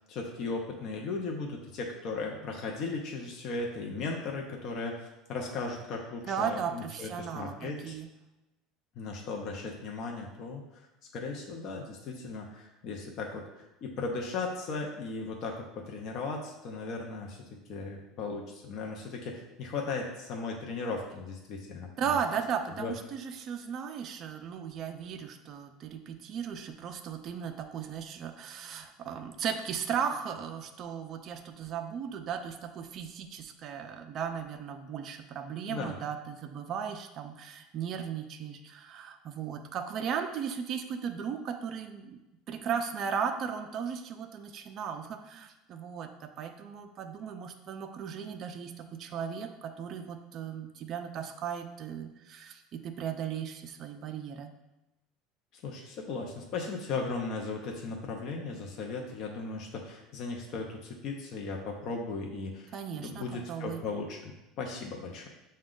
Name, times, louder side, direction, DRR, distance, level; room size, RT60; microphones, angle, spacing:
voice 1, 0.1-7.9 9.0-10.9 11.1-22.2 22.7-22.9 35.7-36.0 55.5-65.3, left 3 dB, 40° left, 0 dB, 0.5 m, -37 dB
voice 2, 6.3-8.1 22.0-42.2 42.5-54.5 62.7-63.8, right 7 dB, 35° right, 6 dB, 0.3 m, -36 dB
5.9 x 2.2 x 3.7 m, 0.99 s
cardioid pair, 170°, 0 cm